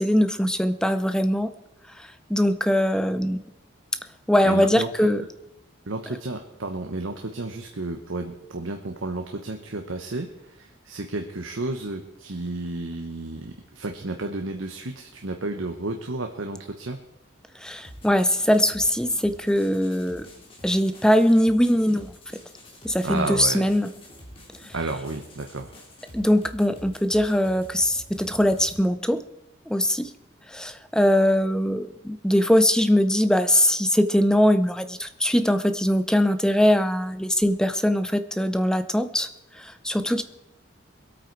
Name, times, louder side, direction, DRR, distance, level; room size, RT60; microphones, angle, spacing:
voice 1, 0.0-1.5 2.0-3.4 4.3-5.2 17.6-20.3 20.6-22.1 22.8-23.9 26.1-29.2 29.7-30.1 30.5-39.3 39.6-40.2, equal, 5° left, 10 dB, 0.5 m, -21 dB
voice 2, 4.4-5.1 5.9-17.0 23.0-23.7 24.7-25.8, right 2 dB, 85° right, 4 dB, 1.1 m, -32 dB
sound 1, 17.8-28.8, equal, 30° left, 2.9 m, -47 dB
22.0 x 8.7 x 4.7 m, 0.87 s
head